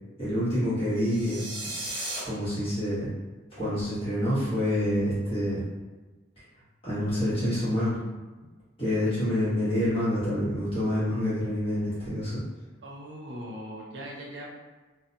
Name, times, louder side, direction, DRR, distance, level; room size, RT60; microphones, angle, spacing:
voice 1, 0.2-1.5 1.9-2.0 2.2-3.1 3.6-5.6 6.8-8.0 8.8-12.4, left 1 dB, 30° left, -12 dB, 1.1 m, -27 dB
sound 1, 1.0-2.2, right 1 dB, 5° right, 1.3 m, -35 dB
voice 2, 12.8-14.5, equal, 65° right, -3 dB, 0.7 m, -40 dB
2.5 x 2.1 x 2.6 m, 1.2 s
head